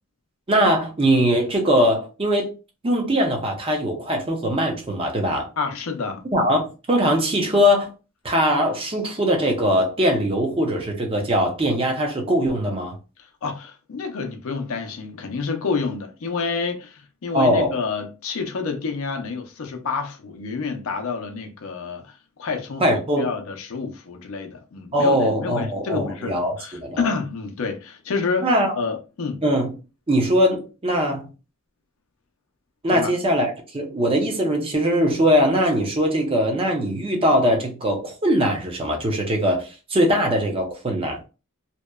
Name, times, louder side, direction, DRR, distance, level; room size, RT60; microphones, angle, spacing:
voice 1, 0.5-2.5 2.8-5.5 6.3-7.9 8.2-13.0 17.3-17.7 22.8-23.3 24.9-27.1 28.4-28.8 29.4-29.7 30.1-31.3 32.8-41.2, equal, 25° right, 0.5 m, -21 dB
voice 2, 5.6-6.3 13.4-22.1 22.4-22.8 23.2-29.4 32.9-33.1, left 4 dB, 70° left, 0.5 m, -28 dB
2.8 x 2.1 x 2.2 m
head